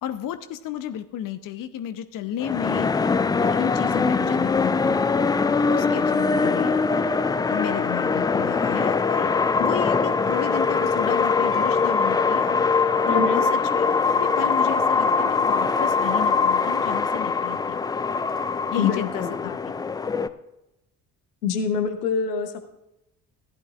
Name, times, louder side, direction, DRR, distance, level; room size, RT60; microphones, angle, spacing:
voice 1, 0.0-5.0 5.7-6.7 7.5-12.6 13.1-13.9 14.1-17.8 18.7-19.6, left 10 dB, 45° left, 11 dB, 0.8 m, -33 dB
sound 1, 2.4-20.3, left 4 dB, 10° left, 0.3 m, -22 dB
Percussion / Church bell, 11.5-15.9, left 5 dB, 25° left, 2.7 m, -46 dB
voice 2, 13.1-13.4 18.8-19.5 21.4-22.6, left 6 dB, 80° left, 7 dB, 1.1 m, -25 dB
16.0 x 11.5 x 2.5 m, 0.90 s
figure-of-eight pair, 50°, 46 cm